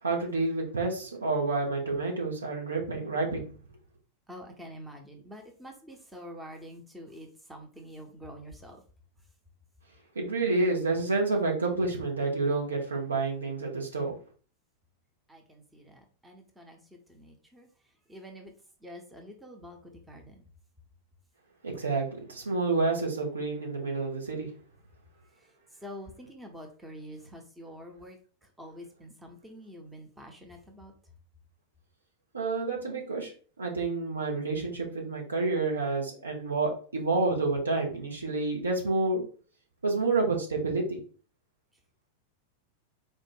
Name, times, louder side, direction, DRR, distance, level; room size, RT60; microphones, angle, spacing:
voice 1, 0.0-3.5 10.1-14.1 21.6-24.5 32.3-33.3 33.6-39.2 39.8-41.0, right 3 dB, 75° right, -1 dB, 1.2 m, -29 dB
voice 2, 4.3-8.8 15.3-17.7 18.1-18.5 18.8-20.4 25.4-25.5 25.8-28.2 28.6-30.9 38.0-38.1, equal, 5° right, 2 dB, 0.9 m, -47 dB
4.4 x 2.5 x 4.7 m, 0.40 s
figure-of-eight pair, 90°, 0 cm